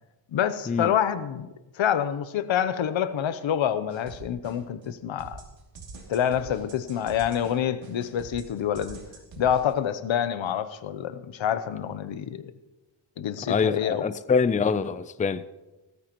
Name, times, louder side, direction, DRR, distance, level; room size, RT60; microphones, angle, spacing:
voice 1, 0.3-1.5 1.7-5.4 6.1-9.0 9.4-12.5 13.2-14.1, left 9 dB, 90° left, 0.8 m, -27 dB
sound 1, 3.9-4.9 5.2-9.7, right 3 dB, 85° right, 2.7 m, -44 dB
voice 2, 13.5-15.4, left 5 dB, 20° left, 0.4 m, -24 dB
17.5 x 14.0 x 3.0 m
wide cardioid pair, 120°, 45 cm